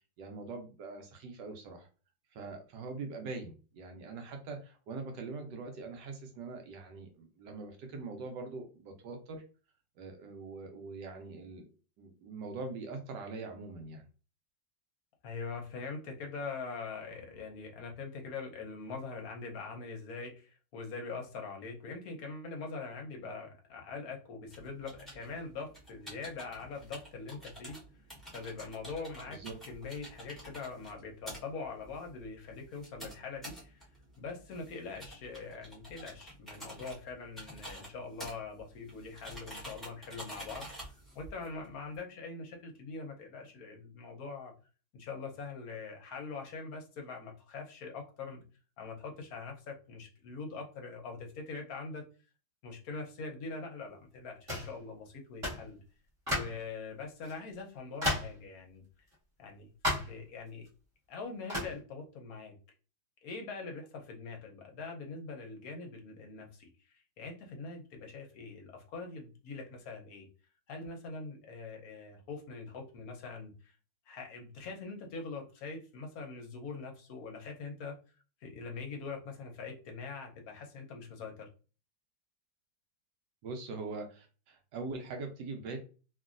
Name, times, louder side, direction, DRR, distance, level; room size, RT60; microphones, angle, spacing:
voice 1, 0.2-1.9 2.3-9.4 10.0-11.6 12.0-14.0 29.3-29.5 83.4-85.8, right 3 dB, 75° right, 4 dB, 1.2 m, -42 dB
voice 2, 15.2-27.8 28.3-29.4 29.7-33.9 34.2-44.5 44.9-48.4 48.8-52.0 52.6-55.8 56.3-58.8 59.4-59.7 60.0-60.7 61.1-62.6 63.2-70.3 70.7-73.7 74.1-78.0 78.4-81.5, left 4 dB, 60° left, 2 dB, 1.0 m, -43 dB
sound 1, 24.5-42.0, equal, ahead, 0.6 m, -49 dB
sound 2, 54.5-54.8 55.4-55.7 56.3-56.6 57.3-57.4 58.0-58.4 59.8-60.2 61.5-61.8, left 1 dB, 20° right, 1.1 m, -33 dB
3.0 x 2.6 x 2.4 m, 0.35 s
omnidirectional pair, 2.0 m